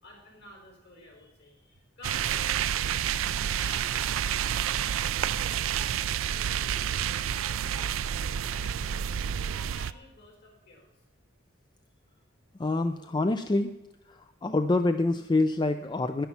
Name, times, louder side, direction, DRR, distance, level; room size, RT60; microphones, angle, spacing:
voice 1, 0.0-3.2 3.5-4.6 4.9-6.0 6.3-9.0 9.3-10.9, left 2 dB, 55° left, 0 dB, 4.5 m, -51 dB
sound 1, 2.0-9.9, right 9 dB, 80° right, 0.4 m, -29 dB
voice 2, 12.6-13.8 14.1-16.3, left 2 dB, 20° left, 8 dB, 0.4 m, -26 dB
11.5 x 10.0 x 5.7 m, 1.0 s
head